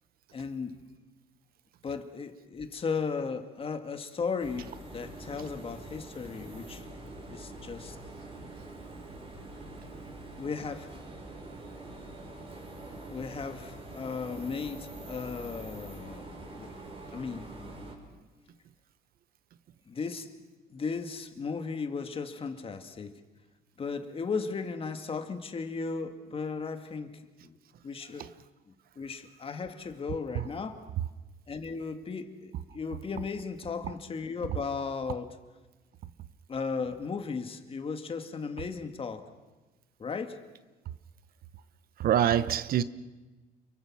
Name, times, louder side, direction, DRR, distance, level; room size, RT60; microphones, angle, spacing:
voice 1, 0.3-0.8 1.8-6.9 7.3-8.0 10.4-10.9 13.1-16.3 16.5-16.8 17.1-17.5 19.9-20.3 20.7-23.2 23.8-27.6 27.8-28.3 28.7-30.9 31.5-35.4 36.5-39.3 40.0-40.4, left 5 dB, 35° left, 2.2 m, -36 dB
sound 1, 4.4-17.9, right 2 dB, 35° right, 6.2 m, -45 dB
voice 2, 42.0-42.8, right 10 dB, 60° right, 1.0 m, -25 dB
29.0 x 23.0 x 6.4 m
cardioid pair, 110°, 17 cm